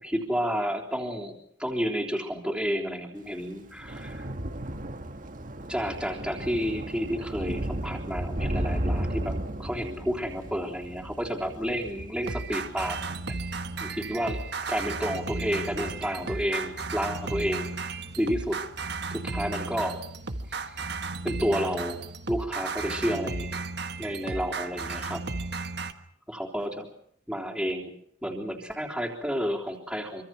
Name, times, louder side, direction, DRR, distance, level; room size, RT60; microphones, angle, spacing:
voice 1, 0.0-4.3 5.7-13.2 13.8-14.4 14.7-18.6 19.1-20.0 20.5-20.8 21.2-23.6 24.0-25.2 26.3-26.9 27.3-30.2, equal, 5° right, -1 dB, 3.5 m, -31 dB
Thunder / Rain, 3.3-19.8 20.2-20.6 20.9-21.1, right 1 dB, 45° right, 1.6 m, -36 dB
sound 1, 12.2-25.9, right 3 dB, 60° right, 1.4 m, -34 dB
25.5 x 24.5 x 5.9 m, 0.65 s
head